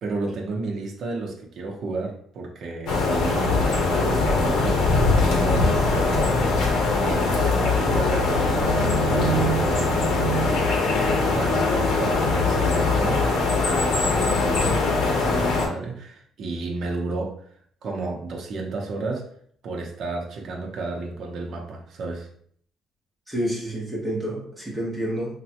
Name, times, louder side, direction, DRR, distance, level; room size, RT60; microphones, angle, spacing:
voice 1, 0.0-4.9 5.2-6.5 7.0-8.7 9.1-10.3 11.3-17.3 17.8-19.2 19.6-22.3, right 3 dB, 45° right, 0 dB, 0.5 m, -32 dB
sound 1, 2.9-15.7, left 3 dB, 80° left, 0.7 m, -21 dB
voice 2, 23.3-25.3, right 1 dB, 5° right, -5 dB, 0.8 m, -28 dB
3.1 x 2.1 x 2.7 m, 0.62 s
cardioid pair, 175°, 0 cm